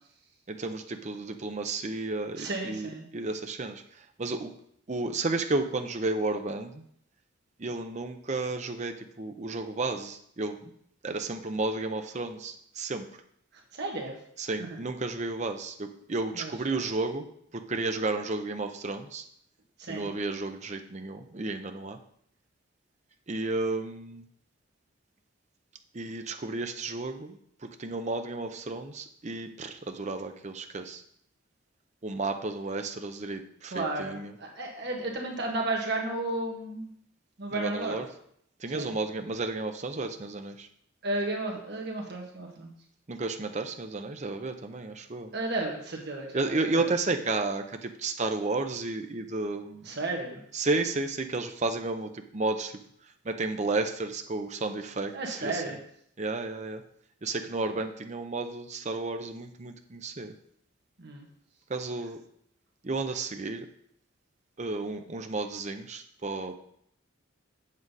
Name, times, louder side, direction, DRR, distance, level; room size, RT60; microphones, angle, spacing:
voice 1, 0.5-4.5 4.9-6.8 7.6-10.7 11.0-13.1 14.4-17.2 17.5-19.2 19.9-22.0 23.3-24.2 25.9-31.0 32.0-34.3 37.5-38.1 38.6-40.7 43.1-45.3 46.3-49.9 50.5-52.7 53.2-55.7 56.2-56.8 57.2-60.3 61.7-62.2 62.8-63.7 64.6-66.6, right 3 dB, 35° right, 6 dB, 0.6 m, -32 dB
voice 2, 2.4-3.0 13.7-14.1 14.6-14.8 16.3-16.5 19.8-20.1 33.7-36.9 37.4-38.0 38.7-38.9 41.0-42.7 45.3-46.9 49.8-50.4 55.1-55.8 61.0-61.2, right 2 dB, 55° right, 0 dB, 1.5 m, -33 dB
7.6 x 7.4 x 4.0 m, 0.70 s
head